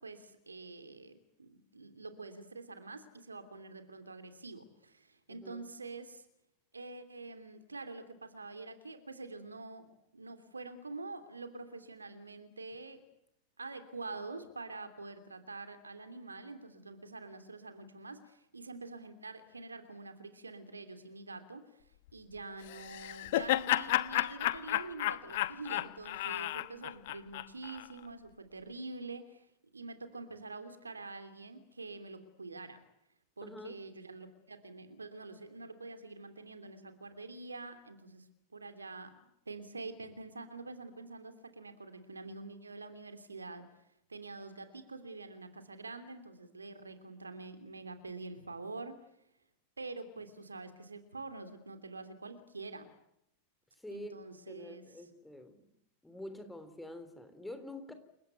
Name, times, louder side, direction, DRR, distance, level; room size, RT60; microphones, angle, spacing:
voice 1, 0.0-6.2 6.7-13.0 13.6-21.8 22.1-29.5 29.7-32.8 33.4-38.3 38.5-39.2 39.5-43.6 44.1-49.0 49.8-52.9 53.9-54.8, right 3 dB, 80° right, 9 dB, 2.9 m, -46 dB
voice 2, 5.3-5.6 33.4-33.8 53.7-54.1 54.5-55.7 56.0-57.9, left 1 dB, 5° left, 8 dB, 3.6 m, -47 dB
Laughter, 22.7-27.9, left 16 dB, 55° left, 1.1 m, -32 dB
29.0 x 16.5 x 9.2 m, 0.78 s
figure-of-eight pair, 90°, 0 cm